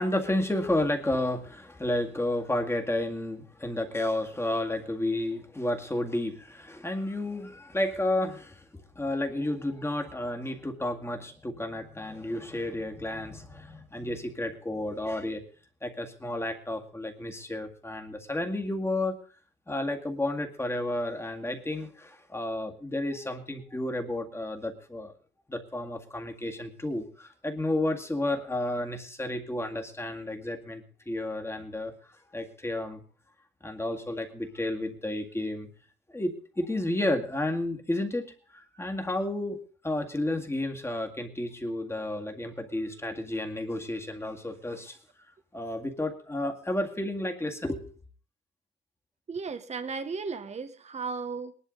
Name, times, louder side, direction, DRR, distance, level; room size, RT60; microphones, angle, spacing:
voice 1, 0.0-8.6 9.0-15.4 15.8-19.2 19.7-25.1 25.5-31.9 32.3-33.0 33.6-35.7 36.1-45.0 45.5-47.8, left 1 dB, 15° left, 3 dB, 2.0 m, -31 dB
voice 2, 49.3-51.5, right 4 dB, 35° right, 9 dB, 1.1 m, -35 dB
19.0 x 11.0 x 3.9 m, 0.41 s
cardioid pair, 90°, 20 cm